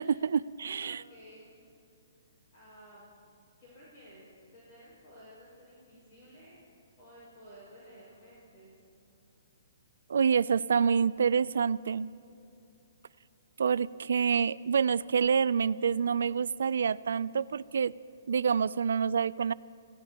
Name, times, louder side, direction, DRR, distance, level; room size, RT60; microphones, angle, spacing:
voice 1, 0.0-1.0 10.1-12.1 13.6-17.9 18.3-19.5, right 6 dB, 75° right, 19 dB, 0.3 m, -27 dB
voice 2, 0.8-1.5 2.2-3.1 3.6-6.6 7.0-8.8 9.1-9.4, equal, 30° left, -8 dB, 5.2 m, -54 dB
29.5 x 17.0 x 2.9 m, 2.7 s
hypercardioid pair, 175°, 0 cm